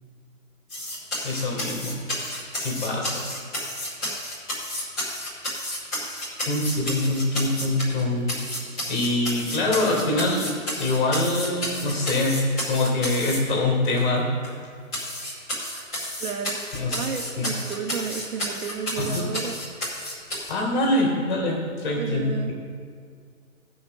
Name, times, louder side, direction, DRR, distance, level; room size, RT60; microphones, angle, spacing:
sound 1, 0.7-8.0 8.3-13.4 14.0-14.1 14.4-14.5 14.9-20.5, left 1 dB, ahead, 0.6 m, -31 dB
voice 1, 1.2-2.0 2.6-3.2 6.5-8.3 8.9-12.4 12.7-14.3 16.7-17.0 17.4-17.5 19.0-19.3 20.5-22.5, left 2 dB, 35° left, -1 dB, 3.3 m, -24 dB
voice 2, 16.2-19.9 22.0-22.5, right 7 dB, 75° right, 2 dB, 1.5 m, -33 dB
16.5 x 5.7 x 5.5 m, 2.1 s
hypercardioid pair, 170°, 41 cm